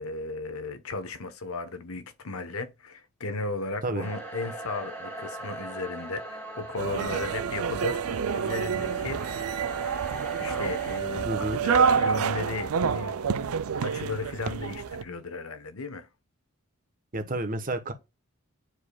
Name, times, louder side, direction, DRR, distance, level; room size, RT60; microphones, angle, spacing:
voice 1, 0.0-9.2 10.4-13.2 13.8-16.1, left 3 dB, 80° left, 1.0 m, -35 dB
sound 1, 4.0-11.0, right 1 dB, 10° left, 1.9 m, -40 dB
sound 2, 6.8-15.0, right 6 dB, 85° right, 0.5 m, -28 dB
voice 2, 11.2-11.6 17.1-17.9, right 2 dB, 40° right, 1.1 m, -30 dB
9.2 x 5.0 x 2.3 m
head